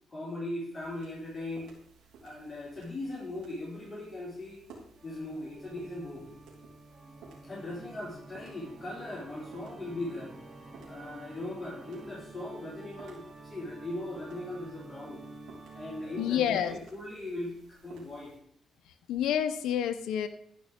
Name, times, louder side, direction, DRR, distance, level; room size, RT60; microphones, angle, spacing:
voice 1, 0.1-1.7 2.2-4.6 5.0-6.3 7.4-10.3 10.8-15.2 15.7-18.3, left 1 dB, 30° left, -6 dB, 4.8 m, -39 dB
sound 1, 0.7-18.4, right 4 dB, 85° right, 4.1 m, -57 dB
Organ, 5.0-16.8, right 2 dB, 25° right, 2.9 m, -49 dB
voice 2, 16.2-16.8 19.1-20.3, left 9 dB, 85° left, 8 dB, 0.9 m, -28 dB
14.0 x 5.5 x 5.3 m, 0.68 s
cardioid pair, 90°, 0 cm